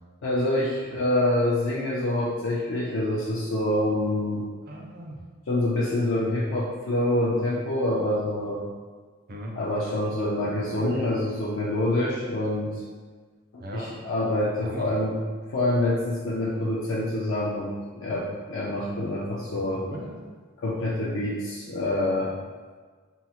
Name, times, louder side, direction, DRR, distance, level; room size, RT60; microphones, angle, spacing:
voice 1, 0.2-4.5 5.5-8.6 9.5-12.8 13.5-15.2 15.5-19.8 20.6-22.3, left 1 dB, 70° left, -6 dB, 0.5 m, -26 dB
voice 2, 4.6-5.2 9.3-9.6 10.6-11.0 13.6-14.1 14.6-14.9 19.5-20.3, right 1 dB, 50° right, -1 dB, 0.5 m, -38 dB
3.6 x 2.0 x 2.8 m, 1.5 s
head